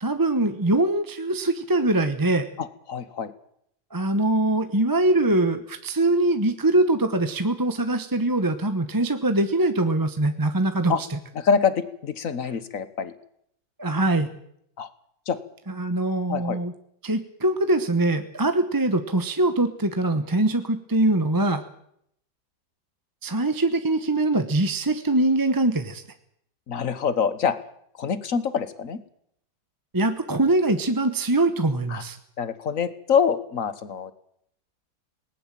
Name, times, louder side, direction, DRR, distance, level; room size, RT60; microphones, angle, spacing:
voice 1, 0.0-2.5 3.9-11.2 13.8-14.3 15.7-16.7 17.0-21.6 23.2-26.0 29.9-32.2, right 2 dB, 15° right, 9 dB, 0.9 m, -23 dB
voice 2, 2.6-3.3 10.9-11.0 11.3-13.1 14.8-14.9 15.3-15.4 16.3-16.6 26.7-27.5 28.0-29.0 31.9-32.0 32.4-34.1, left 6 dB, 50° left, 14 dB, 1.6 m, -25 dB
19.5 x 19.5 x 7.6 m, 0.72 s
omnidirectional pair, 1.9 m